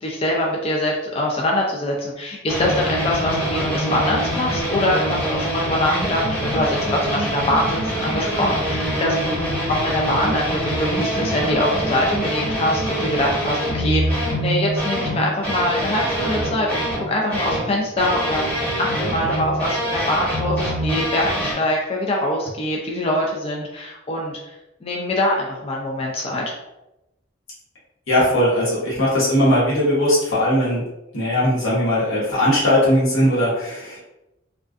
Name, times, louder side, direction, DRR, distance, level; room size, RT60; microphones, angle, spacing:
voice 1, 0.0-9.4 9.7-24.5 24.8-26.4, left 1 dB, 30° left, -1 dB, 0.3 m, -23 dB
sound 1, 2.5-17.7 18.0-21.5, equal, 10° left, 0.9 m, -24 dB
voice 2, 28.1-30.8 31.1-34.0, equal, 90° left, -8 dB, 1.0 m, -19 dB
2.3 x 2.3 x 2.4 m, 0.95 s
head